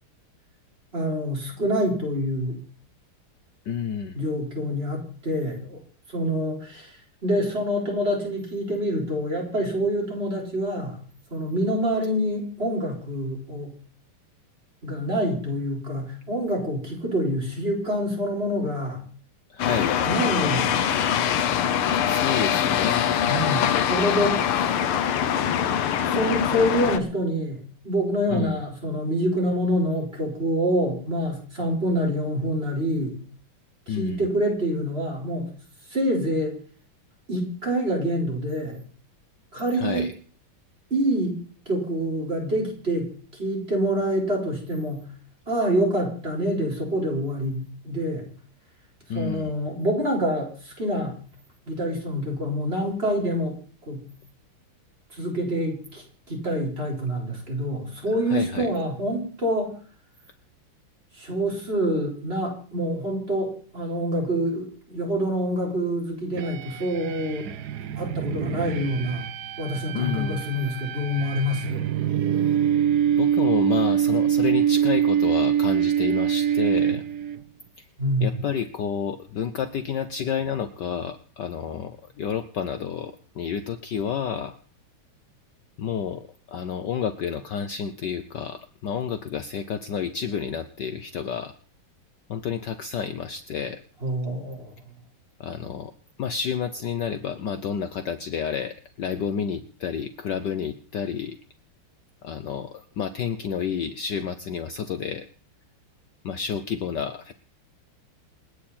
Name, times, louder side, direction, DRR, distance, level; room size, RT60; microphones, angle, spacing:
voice 1, 0.9-2.6 4.1-5.8 6.1-11.0 11.3-13.7 14.8-19.0 20.0-21.1 23.3-24.9 26.0-33.2 33.9-35.5 35.9-36.6 37.3-38.8 39.5-40.0 40.9-41.4 41.7-45.1 45.5-48.3 49.1-51.2 51.6-53.5 53.8-54.0 55.1-59.7 61.1-67.5 68.0-69.3 69.6-71.8 78.0-78.4 94.0-94.7, equal, 25° right, -1 dB, 5.0 m, -26 dB
voice 2, 3.6-4.2 19.5-20.1 22.0-23.1 28.3-28.6 33.9-34.2 39.7-40.1 49.1-49.5 58.3-58.7 69.9-70.4 73.2-77.0 77.8-77.9 78.2-84.6 85.8-91.5 92.3-93.8 95.4-95.9 96.2-101.4 102.2-105.3 106.2-107.3, left 7 dB, 60° left, 10 dB, 1.3 m, -30 dB
sound 1, 19.6-27.0, left 9 dB, 80° left, 1.8 m, -23 dB
Feedback growing into a monster, 66.4-77.4, right 9 dB, 60° right, 1.1 m, -24 dB
28.0 x 9.5 x 4.3 m, 0.42 s
omnidirectional pair, 2.4 m